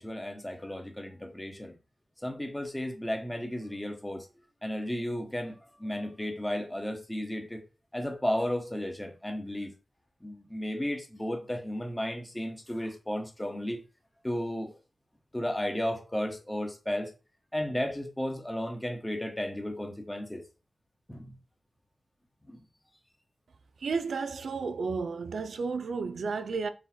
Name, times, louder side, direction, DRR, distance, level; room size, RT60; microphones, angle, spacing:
voice 1, 0.0-1.7 2.2-4.3 4.6-7.6 7.9-9.7 10.2-13.8 14.2-14.7 15.3-17.1 17.5-20.4 21.1-21.3, left 1 dB, 10° left, 1.0 m, -34 dB
voice 2, 23.8-26.7, right 4 dB, 90° right, 0.4 m, -32 dB
4.1 x 2.3 x 4.4 m
wide cardioid pair, 65°, 0 cm